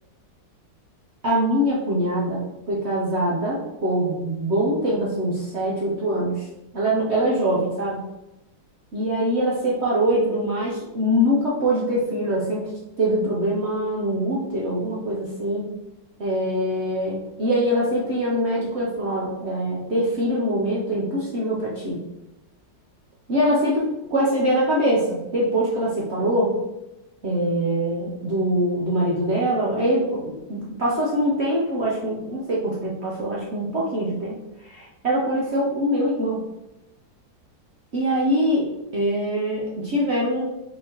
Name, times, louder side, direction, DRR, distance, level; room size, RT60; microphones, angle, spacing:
voice 1, 1.2-2.4 2.7-6.5 6.7-8.0 8.9-12.7 13.0-15.7 16.2-22.0 23.3-26.5 27.2-34.3 34.6-36.4 37.9-40.4, equal, 60° right, -5 dB, 0.7 m, -23 dB
4.4 x 3.4 x 2.9 m, 0.92 s
omnidirectional pair, 2.0 m